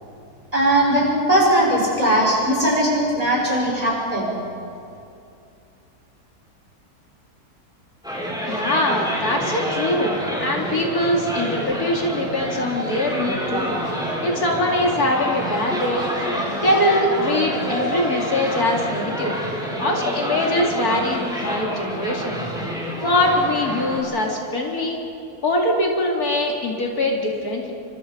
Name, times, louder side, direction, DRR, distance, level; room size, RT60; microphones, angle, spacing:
voice 1, 0.5-4.3, right 1 dB, 20° right, -3 dB, 6.4 m, -19 dB
sound 1, 8.0-24.0, equal, ahead, 4.8 m, -28 dB
voice 2, 8.5-16.0 16.6-19.4 19.8-22.4 23.0-25.0 25.4-27.7, left 1 dB, 65° left, 0 dB, 3.0 m, -22 dB
28.0 x 25.5 x 5.2 m, 2.6 s
omnidirectional pair, 1.7 m